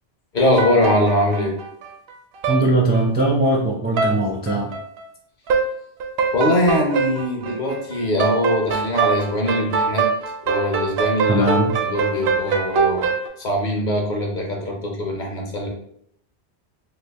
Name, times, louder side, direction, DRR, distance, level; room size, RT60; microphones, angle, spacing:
voice 1, 0.3-1.5 6.3-10.1 10.4-11.4 11.8-13.1 13.4-15.7, left 1 dB, 50° left, 0 dB, 0.8 m, -21 dB
sound 1, 0.6-2.1 2.4-2.6 2.9-3.5 3.9-4.2 4.5-5.0 5.5-5.7 6.0-13.3, right 5 dB, 70° right, 0.8 m, -23 dB
voice 2, 2.5-4.7 11.3-11.7, right 1 dB, 15° right, -2 dB, 0.4 m, -20 dB
3.2 x 2.4 x 3.4 m, 0.70 s
omnidirectional pair, 1.1 m